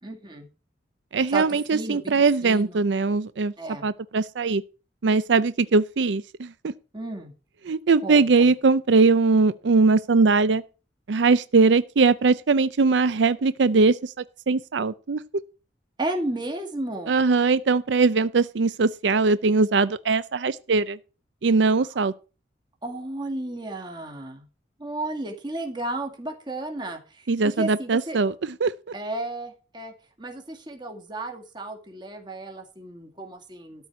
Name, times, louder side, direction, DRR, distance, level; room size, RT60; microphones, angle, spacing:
voice 1, 0.0-0.5 1.3-1.4 1.7-2.0 2.4-2.8 3.6-3.9 6.9-7.3 8.0-8.5 16.0-17.2 22.8-24.4 24.8-28.2 28.9-29.9 30.2-33.9, right 2 dB, 25° right, 2.0 m, -33 dB
voice 2, 1.1-3.5 3.8-4.6 5.0-6.7 7.6-10.6 11.1-15.2 17.1-21.0 21.4-22.1 27.3-28.7, right 4 dB, 90° right, 0.5 m, -21 dB
13.0 x 4.6 x 8.0 m
head